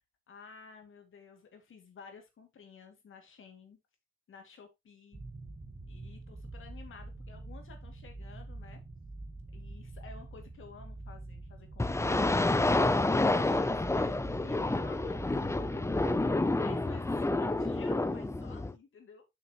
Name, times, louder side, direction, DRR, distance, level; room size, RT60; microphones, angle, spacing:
voice 1, 0.3-3.8 4.3-5.2 5.9-8.8 9.5-19.2, left 5 dB, 80° left, 5 dB, 2.5 m, -53 dB
sound 1, 5.1-16.4, right 2 dB, 25° right, 1.5 m, -46 dB
sound 2, 11.8-18.7, left 2 dB, 15° left, 0.6 m, -29 dB
8.3 x 6.0 x 3.1 m, 0.21 s
wide cardioid pair, 110°, 21 cm